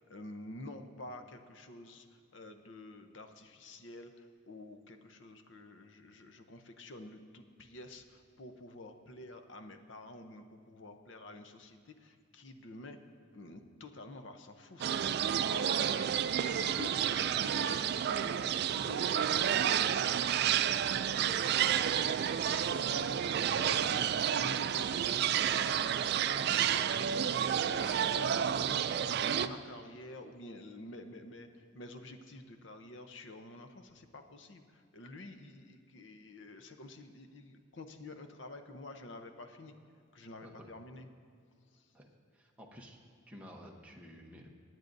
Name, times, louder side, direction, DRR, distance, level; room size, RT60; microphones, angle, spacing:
voice 1, 0.0-2.1 2.3-13.0 13.3-14.8 15.3-15.6 15.9-16.1 16.4-18.3 18.6-23.2 23.5-25.9 26.3-27.3 27.6-39.8 40.1-41.1 41.7-41.8, left 2 dB, 60° left, 7 dB, 0.8 m, -49 dB
sound 1, 14.8-29.5, right 9 dB, 50° right, 0.3 m, -30 dB
voice 2, 16.7-17.0 26.0-26.2 40.4-40.7 41.9-44.5, equal, 5° right, -1 dB, 0.9 m, -52 dB
23.5 x 9.1 x 2.6 m, 2.2 s
head